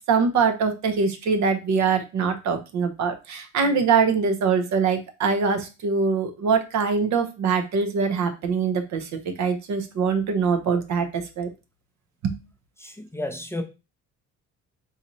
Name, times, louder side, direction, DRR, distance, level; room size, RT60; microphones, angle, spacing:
voice 1, 0.1-11.5 12.2-12.3, right 5 dB, 70° right, 0.8 m, -23 dB
voice 2, 12.8-13.6, left 1 dB, 10° left, 0.5 m, -32 dB
3.9 x 2.7 x 3.0 m
cardioid pair, 90°, 30 cm